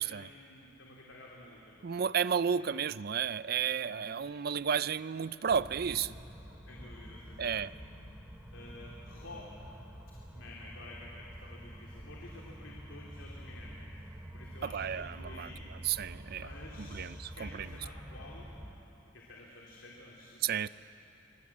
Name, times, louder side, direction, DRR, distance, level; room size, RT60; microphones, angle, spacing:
voice 1, 0.0-2.0 2.5-2.7 3.7-4.0 6.6-7.7 8.5-9.8 10.3-13.9 14.3-15.6 16.2-18.5 19.0-20.7, left 2 dB, 90° left, -3 dB, 3.1 m, -51 dB
voice 2, 1.8-6.1 7.4-7.7 14.6-15.5 15.8-16.4 16.8-17.5 20.4-20.7, right 7 dB, 55° right, 17 dB, 0.5 m, -32 dB
sound 1, 5.5-18.7, equal, 10° right, 2.2 m, -47 dB
26.0 x 21.0 x 8.6 m, 3.0 s
head